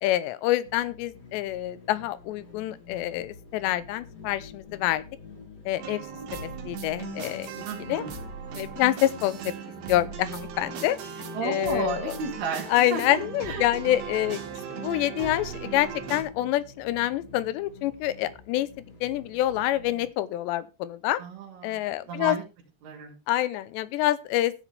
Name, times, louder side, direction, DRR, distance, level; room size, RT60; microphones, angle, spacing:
voice 1, 0.0-5.0 5.7-6.0 6.3-8.0 8.5-9.5 9.9-11.0 11.4-12.1 12.7-14.4 14.7-18.7 19.0-21.2 21.6-22.4 23.3-24.5, left 14 dB, 85° left, 16 dB, 3.0 m, -27 dB
sound 1, 0.6-20.1, left 4 dB, 40° left, 3.9 m, -47 dB
sound 2, 5.8-16.2, right 7 dB, 85° right, 4.5 m, -38 dB
voice 2, 7.6-8.1 11.3-13.7 21.2-21.8 22.1-22.4 22.8-23.1, right 5 dB, 65° right, -3 dB, 4.3 m, -33 dB
15.0 x 10.0 x 3.5 m, 0.28 s
omnidirectional pair, 5.0 m